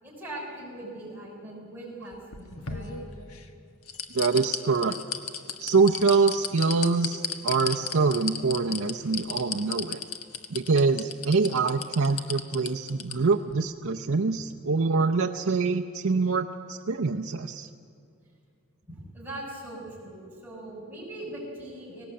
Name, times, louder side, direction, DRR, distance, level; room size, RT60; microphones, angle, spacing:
voice 1, 0.0-3.0 18.9-22.0, right 1 dB, 10° right, -5 dB, 6.4 m, -40 dB
sound 1, 2.1-3.4 3.9-13.1 13.5-13.6, left 7 dB, 80° left, 1.4 m, -33 dB
voice 2, 4.1-5.0 5.6-10.0 10.5-17.7, right 4 dB, 70° right, 4 dB, 0.7 m, -25 dB
19.0 x 18.0 x 8.7 m, 2.4 s
head